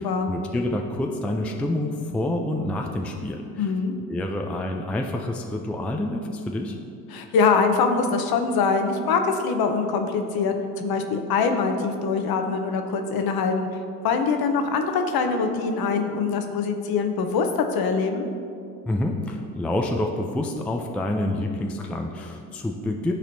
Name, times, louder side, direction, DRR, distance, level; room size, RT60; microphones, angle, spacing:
voice 1, 0.0-3.7 4.1-6.8 18.9-23.1, left 1 dB, 5° left, 3 dB, 0.3 m, -28 dB
voice 2, 3.6-3.9 7.1-13.7 14.0-17.5 17.7-18.2, left 5 dB, 50° left, 5 dB, 0.9 m, -23 dB
12.5 x 4.2 x 2.7 m, 2.5 s
hypercardioid pair, 65°, 48 cm